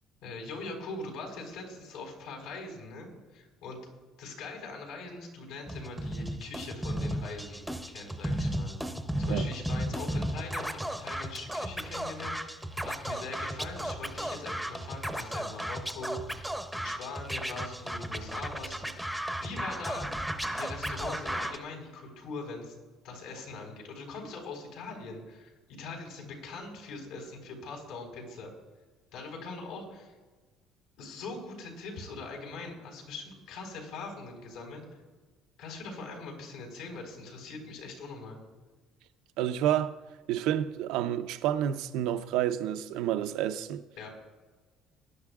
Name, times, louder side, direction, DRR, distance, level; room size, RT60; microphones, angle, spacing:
voice 1, 0.2-3.9 4.2-20.2 20.5-22.7 23.0-28.5 29.1-30.1 31.0-34.8 35.6-38.4 44.0-44.1, left 3 dB, 85° left, 4.3 m, -42 dB
Scratching (performance technique), 5.7-21.6, equal, ahead, 0.6 m, -34 dB
voice 2, 39.4-39.9 40.3-43.8, right 11 dB, 80° right, 0.6 m, -29 dB
20.0 x 11.0 x 2.4 m
cardioid pair, 170°, 0 cm